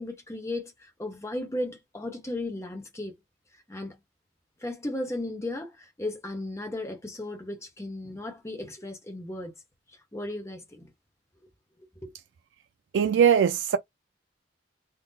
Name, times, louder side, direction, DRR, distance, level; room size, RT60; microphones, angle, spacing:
voice 1, 0.0-3.1 3.7-4.0 4.6-9.5 10.1-10.9 12.0-12.1, left 1 dB, 15° left, 0.9 m, -35 dB
voice 2, 12.9-13.8, right 8 dB, 85° right, 0.3 m, -20 dB
3.8 x 2.0 x 4.0 m
head